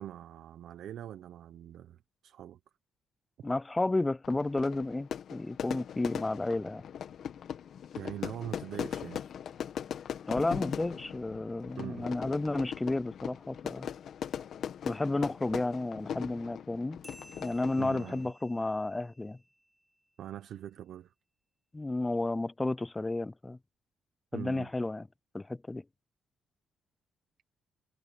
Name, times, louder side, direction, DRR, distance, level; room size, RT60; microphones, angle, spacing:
voice 1, 0.0-2.6 7.9-9.2 11.8-12.1 17.8-18.3 20.2-21.1 24.3-24.7, right 11 dB, 75° right, 1.0 m, -43 dB
voice 2, 3.4-6.8 10.3-13.9 14.8-17.0 17.4-19.4 21.7-23.6 24.3-25.1 25.3-25.8, left 2 dB, 15° left, 0.3 m, -32 dB
Fire / Fireworks, 4.2-18.3, left 8 dB, 65° left, 1.8 m, -40 dB
sound 1, 17.0-20.1, equal, ahead, 3.8 m, -57 dB
cardioid pair, 90°, 0 cm